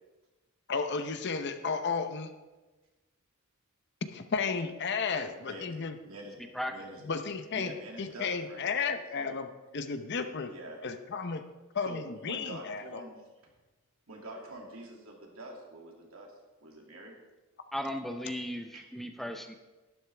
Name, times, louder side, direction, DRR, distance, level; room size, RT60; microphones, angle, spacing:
voice 1, 0.7-2.3 4.1-6.0 7.0-7.7 8.0-9.5 9.7-10.5 10.8-11.4 11.7-13.0, left 5 dB, 55° left, 8 dB, 0.8 m, -33 dB
voice 2, 5.5-7.0 7.5-8.7 9.2-9.4 10.4-10.8 11.8-13.5 14.1-17.2 18.7-18.8, right 1 dB, 75° right, 0 dB, 2.5 m, -46 dB
voice 3, 17.7-19.5, equal, ahead, 5 dB, 0.5 m, -36 dB
12.0 x 11.5 x 3.4 m, 1.2 s
head